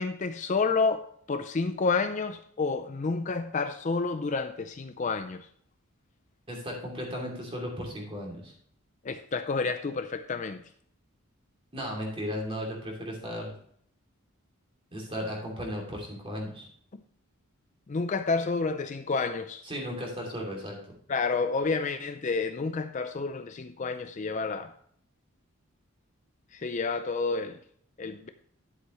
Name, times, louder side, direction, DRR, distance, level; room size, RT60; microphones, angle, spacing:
voice 1, 0.0-5.5 9.0-10.6 16.9-17.0 17.9-19.6 21.1-24.7 26.5-27.6 28.0-28.3, left 4 dB, 35° left, 0.4 m, -29 dB
voice 2, 6.5-8.5 11.7-13.5 14.9-16.7 19.6-20.8, equal, 25° right, 2.8 m, -35 dB
11.0 x 7.9 x 3.1 m
head